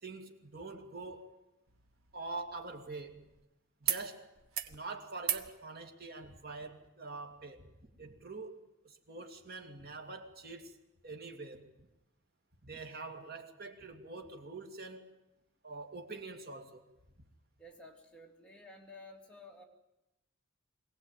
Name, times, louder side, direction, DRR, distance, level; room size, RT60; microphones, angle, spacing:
voice 1, 0.0-1.4 2.1-3.3 3.8-4.3 4.7-7.7 8.0-11.7 12.6-15.1 15.6-16.8, right 3 dB, 45° right, 4 dB, 2.5 m, -45 dB
sound 1, 1.7-3.4 3.8-4.1 4.4-4.8 5.2-5.5 6.8-6.9, right 9 dB, 75° right, 1.3 m, -38 dB
voice 2, 17.6-19.6, left 2 dB, 5° left, -1 dB, 2.8 m, -53 dB
23.0 x 17.0 x 9.1 m, 0.96 s
head